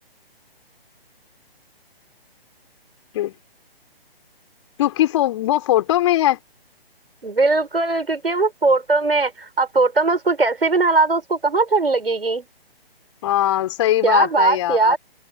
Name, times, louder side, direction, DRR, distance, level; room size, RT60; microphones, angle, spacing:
voice 1, 4.8-6.4 13.2-15.0, left 13 dB, 30° left, 3.6 m, -20 dB
voice 2, 7.2-12.5 14.0-15.0, right 3 dB, 70° right, 7.5 m, -19 dB
figure-of-eight pair, 140°, 30 cm